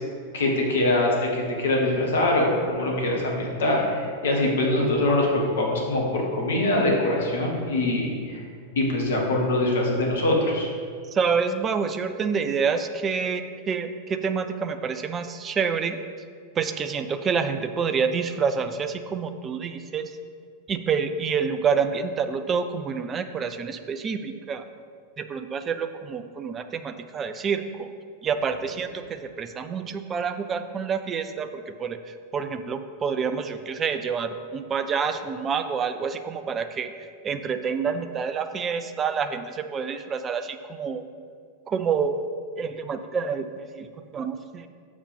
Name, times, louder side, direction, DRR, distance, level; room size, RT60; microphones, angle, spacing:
voice 1, 0.3-8.4 8.7-10.7, left 1 dB, 65° left, -1 dB, 1.6 m, -23 dB
voice 2, 11.1-16.0 16.6-20.1 20.7-24.6 25.2-27.9 28.2-32.0 32.3-36.9 37.2-41.0 41.7-42.2 42.6-43.9 44.1-44.7, right 6 dB, 25° right, 9 dB, 0.4 m, -28 dB
6.7 x 5.0 x 5.4 m, 2.1 s
figure-of-eight pair, 90°, 0 cm